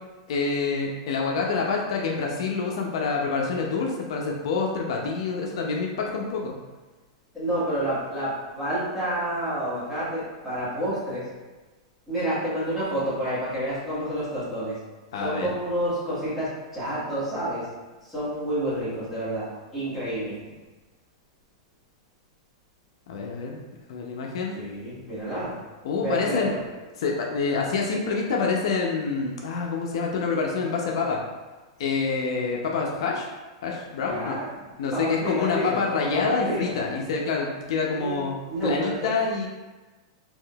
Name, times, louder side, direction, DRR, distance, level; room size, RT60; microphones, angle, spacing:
voice 1, 0.3-6.6 15.1-15.5 23.1-23.6 23.9-24.6 25.8-26.5 27.0-31.2 31.8-33.3 33.6-34.4 34.8-38.4 38.6-39.5, left 4 dB, 65° left, 0 dB, 0.4 m, -27 dB
voice 2, 7.3-11.3 12.1-14.8 15.2-17.7 18.0-20.5 24.5-25.6 26.0-26.6 34.0-34.5 34.9-36.7 37.9-39.1, right 1 dB, 5° right, -13 dB, 1.4 m, -29 dB
3.5 x 2.6 x 2.2 m, 1.2 s
supercardioid pair, 155°, 3 cm